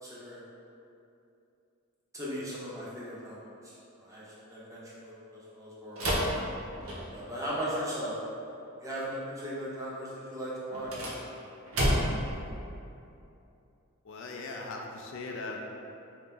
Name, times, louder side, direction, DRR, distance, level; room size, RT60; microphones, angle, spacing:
voice 1, 0.0-0.4 2.1-3.7 4.0-6.0 7.1-8.1 8.8-10.9, equal, 15° right, -8 dB, 0.9 m, -38 dB
sound 1, 5.9-7.4 10.7-12.3, equal, 80° right, 0.8 m, -30 dB
voice 2, 14.0-15.6, left 3 dB, 65° left, 1 dB, 0.4 m, -39 dB
3.9 x 2.9 x 3.7 m, 2.7 s
head